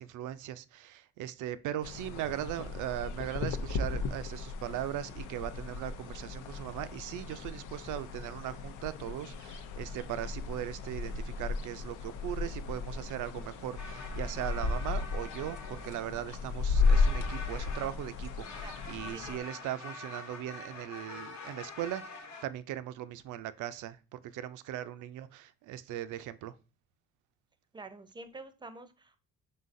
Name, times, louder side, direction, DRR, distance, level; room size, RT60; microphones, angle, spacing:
voice 1, 0.0-22.0 22.4-26.5, right 12 dB, 80° right, 0.5 m, -39 dB
sound 1, 1.8-19.4, left 4 dB, 85° left, 0.5 m, -34 dB
sound 2, 13.8-16.4 16.7-22.5, left 3 dB, 65° left, 1.0 m, -46 dB
voice 2, 19.1-19.5 27.7-29.2, right 3 dB, 15° right, 0.5 m, -47 dB
3.9 x 3.8 x 2.5 m
cardioid pair, 90°, 30 cm